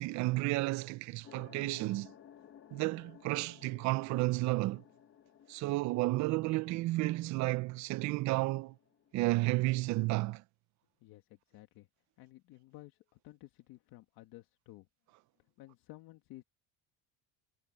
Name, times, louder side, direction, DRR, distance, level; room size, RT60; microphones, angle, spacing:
voice 1, 0.0-2.1 2.7-4.8 5.5-8.7 9.1-10.4, right 20 dB, 50° right, 0.5 m, -32 dB
sound 1, 1.2-10.0, left 9 dB, 35° left, 1.7 m, -59 dB
voice 2, 11.0-11.9 12.2-14.9 15.6-16.4, left 17 dB, 65° left, 1.8 m, -54 dB
cardioid pair, 155°, 38 cm